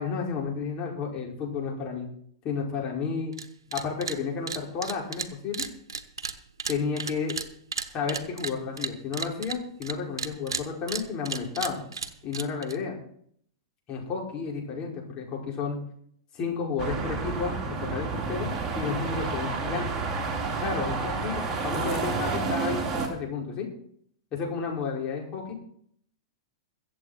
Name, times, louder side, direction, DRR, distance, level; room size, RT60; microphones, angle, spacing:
voice 1, 0.0-2.1 2.4-3.3 3.7-5.6 6.7-7.4 7.9-11.8 12.2-13.0 13.9-15.8 16.3-20.1 20.6-23.7 24.3-25.5, left 5 dB, 35° left, -2 dB, 5.4 m, -32 dB
sound 1, 3.3-3.5 3.7-4.2 4.5-9.9 10.2-12.8, right 5 dB, 80° right, 1.0 m, -33 dB
sound 2, 16.8-23.1, right 4 dB, 25° right, 3.3 m, -30 dB
23.0 x 7.9 x 4.4 m, 0.64 s
figure-of-eight pair, 100°, 2 cm